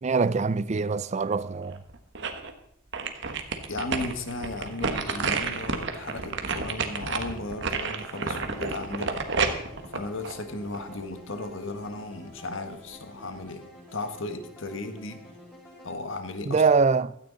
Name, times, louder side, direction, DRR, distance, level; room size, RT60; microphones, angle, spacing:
voice 1, 0.0-1.8 16.5-17.1, right 4 dB, 30° right, 0.4 m, -23 dB
sound 1, 1.7-2.5 2.9-11.0 11.4-11.5, right 4 dB, 55° right, 1.4 m, -30 dB
voice 2, 3.7-9.6 9.9-13.6 13.9-15.3 15.8-16.6, left 2 dB, 60° left, 1.5 m, -36 dB
sound 2, 7.2-15.9, left 1 dB, 10° left, 5.3 m, -49 dB
16.0 x 13.0 x 4.0 m
head